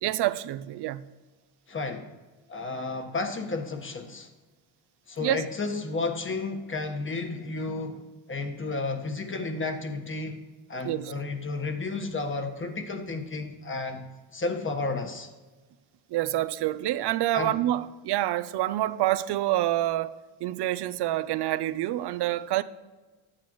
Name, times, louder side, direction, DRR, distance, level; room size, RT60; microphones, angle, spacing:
voice 1, 0.0-1.0 5.2-5.4 10.8-11.1 16.1-22.6, right 14 dB, 65° right, 0.6 m, -27 dB
voice 2, 1.7-2.1 2.5-4.3 5.1-8.0 8.3-10.4 10.7-14.0 14.3-15.3 17.3-17.6, left 3 dB, 25° left, 1.3 m, -32 dB
12.5 x 8.9 x 3.1 m
cardioid pair, 85°, 44 cm